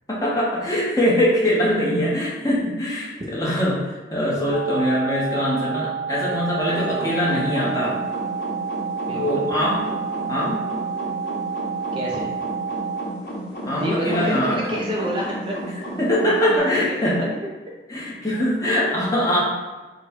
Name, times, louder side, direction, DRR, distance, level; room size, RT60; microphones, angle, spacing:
voice 1, 0.1-8.0 9.1-9.9 10.3-10.7 13.6-14.7 16.0-17.3 17.9-19.4, equal, 20° left, -6 dB, 0.9 m, -22 dB
sound 1, 4.5-13.1, right 6 dB, 80° right, 0.8 m, -29 dB
sound 2, 6.6-16.6, equal, 55° left, 1.0 m, -33 dB
voice 2, 9.1-9.4 11.9-12.3 13.8-15.6 16.5-17.5, equal, 30° right, -3 dB, 0.5 m, -28 dB
4.0 x 2.2 x 4.3 m, 1.2 s
head